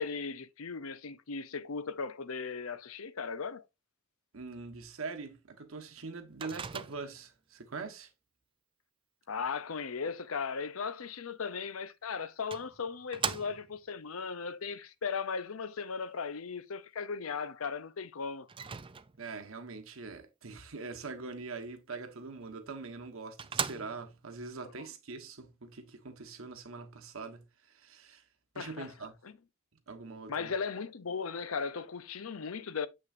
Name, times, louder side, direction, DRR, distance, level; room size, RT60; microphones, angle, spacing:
voice 1, 0.0-3.6 9.3-18.5 28.6-28.9 29.2-29.3 30.3-32.9, left 5 dB, 75° left, 0.7 m, -37 dB
voice 2, 4.3-8.1 19.2-28.2 28.5-29.1 29.9-30.5, right 4 dB, 70° right, 1.3 m, -43 dB
Microwave oven, 6.4-7.3 11.7-11.8 12.5-13.9 18.5-19.4 22.5-22.6 23.0-23.1 23.4-24.3, right 7 dB, 25° right, 0.5 m, -38 dB
7.6 x 6.2 x 2.6 m
head